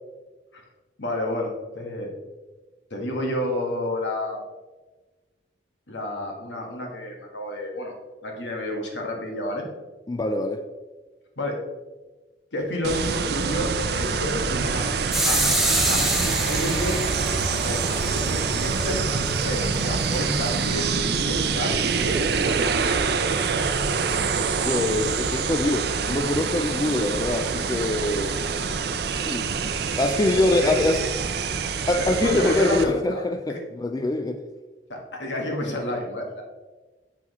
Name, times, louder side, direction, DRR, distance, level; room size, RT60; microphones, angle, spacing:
voice 1, 1.0-2.1 2.9-4.4 5.9-7.9 8.2-9.7 11.4-11.6 12.5-14.9 15.2-15.4 15.8-17.0 17.6-17.8 18.1-19.0 19.3-20.8 21.1-22.4 30.1-30.2 30.6-30.7 32.0-33.2 33.5-33.6 34.9-36.4, left 1 dB, 85° left, 1 dB, 1.5 m, -30 dB
voice 2, 10.1-10.6 24.6-28.3 29.3-29.5 30.0-31.0 31.9-34.4, left 2 dB, 20° left, 7 dB, 0.3 m, -24 dB
sound 1, 12.8-32.8, right 5 dB, 65° right, 0.5 m, -25 dB
sound 2, 15.1-20.8, right 1 dB, ahead, 0.7 m, -28 dB
7.5 x 5.9 x 3.1 m, 1.2 s
head